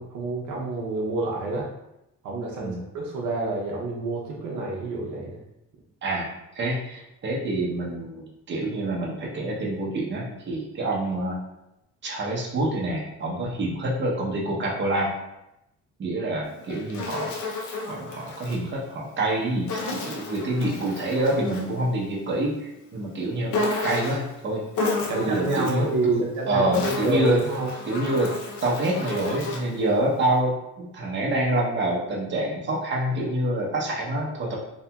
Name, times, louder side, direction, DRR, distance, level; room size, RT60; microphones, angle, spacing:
voice 1, 0.0-1.7 2.2-5.4 25.0-27.7, right 2 dB, 75° right, -3 dB, 0.7 m, -28 dB
voice 2, 6.0-11.4 12.0-15.1 16.0-17.3 17.9-23.5 23.8-24.6 25.1-27.4 27.8-28.3 28.6-34.6, right 1 dB, 40° right, -3 dB, 0.7 m, -26 dB
Insect, 16.4-18.6 19.7-21.8 23.5-24.3 24.7-25.9 26.5-29.8, left 3 dB, 75° left, 0.6 m, -31 dB
2.8 x 2.6 x 2.2 m, 0.88 s
cardioid pair, 90°, 30 cm